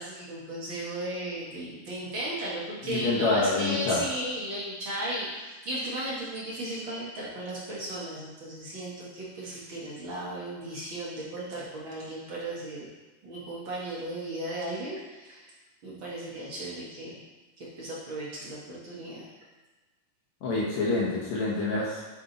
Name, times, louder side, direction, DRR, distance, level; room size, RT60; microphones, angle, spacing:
voice 1, 0.0-12.9 13.2-15.5 15.8-17.2 17.6-19.3, right 1 dB, 55° right, -6 dB, 1.4 m, -35 dB
voice 2, 2.8-4.0 20.4-22.0, left 3 dB, 65° left, -5 dB, 2.0 m, -27 dB
9.6 x 3.6 x 3.9 m, 1.2 s
omnidirectional pair, 4.0 m